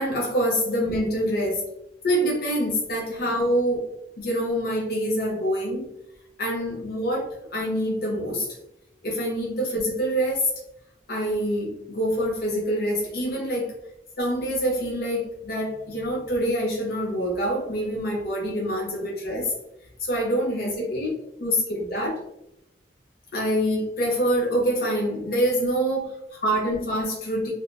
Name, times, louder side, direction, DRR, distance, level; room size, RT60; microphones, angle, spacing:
voice 1, 0.0-1.6 2.0-3.9 4.2-5.9 6.4-8.5 9.0-10.5 11.1-13.8 14.2-19.5 20.0-21.1 21.4-22.2 23.3-27.5, equal, 55° left, -2 dB, 0.5 m, -25 dB
3.3 x 2.1 x 2.4 m, 0.85 s
head